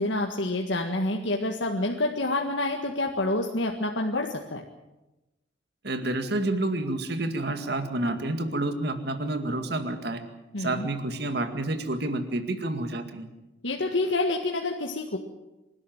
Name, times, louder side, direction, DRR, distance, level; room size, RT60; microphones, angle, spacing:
voice 1, 0.0-4.6 10.5-10.9 13.6-15.2, left 2 dB, 75° left, 1 dB, 1.8 m, -28 dB
voice 2, 5.8-10.2 10.6-13.3, right 2 dB, 60° right, 7 dB, 2.1 m, -29 dB
27.0 x 12.5 x 9.3 m, 1.0 s
head